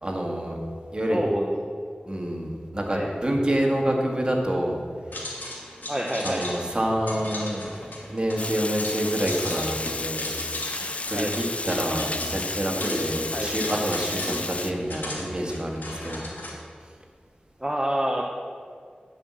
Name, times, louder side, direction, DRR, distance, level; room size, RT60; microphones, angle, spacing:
voice 1, 0.0-0.6 0.9-1.2 2.1-4.8 6.2-10.3 11.1-16.2, right 1 dB, 30° right, 0 dB, 1.8 m, -27 dB
voice 2, 1.1-1.5 2.9-3.1 5.9-6.5 11.1-11.3 13.3-13.5 17.6-18.2, right 1 dB, 10° right, -1 dB, 0.9 m, -27 dB
sound 1, 5.1-16.5, left 1 dB, 80° left, 1.9 m, -36 dB
Water, 8.4-14.7, left 2 dB, 40° left, 0.4 m, -32 dB
10.5 x 5.5 x 7.5 m, 2.1 s
wide cardioid pair, 60°, 3 cm